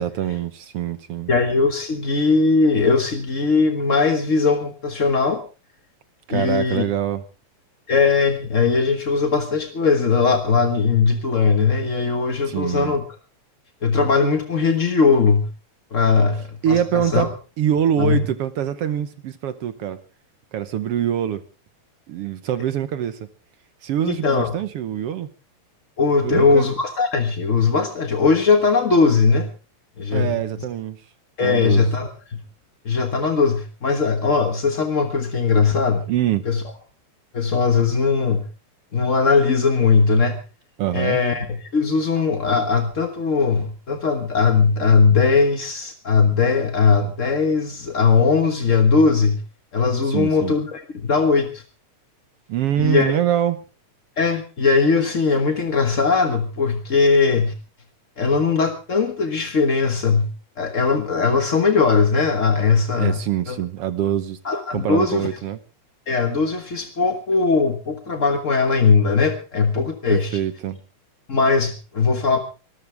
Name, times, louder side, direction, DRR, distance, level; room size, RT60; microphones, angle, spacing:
voice 1, 0.0-1.3 6.3-7.2 12.5-12.9 16.6-20.0 20.5-21.4 22.1-23.3 23.8-25.3 26.2-26.7 30.1-31.0 31.4-31.9 36.1-36.5 40.8-41.2 50.0-50.6 52.5-53.6 63.0-64.4 64.7-65.6 70.1-70.8, right 10 dB, 65° right, 12 dB, 1.7 m, -24 dB
voice 2, 1.3-5.4 6.3-6.8 7.9-13.0 13.8-15.5 15.9-17.3 18.0-18.2 24.0-24.5 26.0-29.5 30.0-30.3 31.4-32.1 32.8-36.0 36.4-36.6 37.3-38.4 38.9-40.4 40.9-49.4 49.7-51.6 52.8-53.2 54.2-57.5 58.2-60.3 60.6-63.2 63.5-63.6 64.4-65.3 66.1-70.4 71.3-72.4, left 4 dB, 40° left, 6 dB, 1.1 m, -19 dB
24.5 x 13.5 x 3.4 m, 0.34 s
omnidirectional pair, 3.3 m